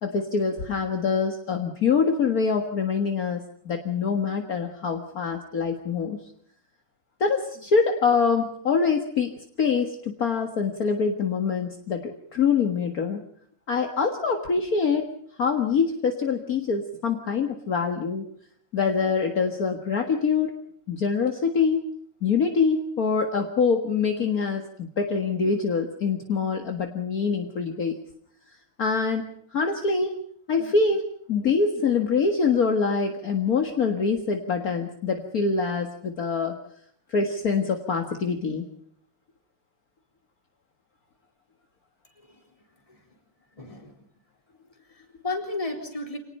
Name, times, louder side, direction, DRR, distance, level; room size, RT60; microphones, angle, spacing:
voice 1, 0.0-6.2 7.2-13.2 13.7-15.1 15.4-18.3 18.7-20.5 20.9-21.9 22.2-28.0 28.8-30.2 30.5-36.6 37.1-38.6, left 5 dB, 40° left, 4 dB, 1.5 m, -25 dB
voice 2, 43.5-44.0 44.9-46.2, left 2 dB, 10° left, 2 dB, 3.9 m, -33 dB
27.0 x 19.0 x 5.5 m, 0.64 s
omnidirectional pair, 3.6 m